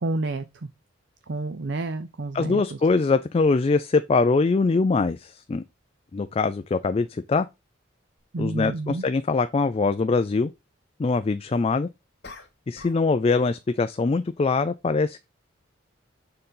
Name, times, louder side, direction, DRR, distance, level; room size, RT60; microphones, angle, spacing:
voice 1, 0.0-0.7 1.3-2.6 8.3-9.0, right 2 dB, 60° right, 0.6 m, -29 dB
voice 2, 2.3-5.6 6.1-7.5 8.4-10.5 11.0-11.9 12.7-15.3, left 4 dB, 30° left, 0.3 m, -23 dB
sound 1, 8.2-8.3 12.2-13.1 13.4-13.7, left 3 dB, 55° left, 2.4 m, -45 dB
6.8 x 3.9 x 5.5 m
head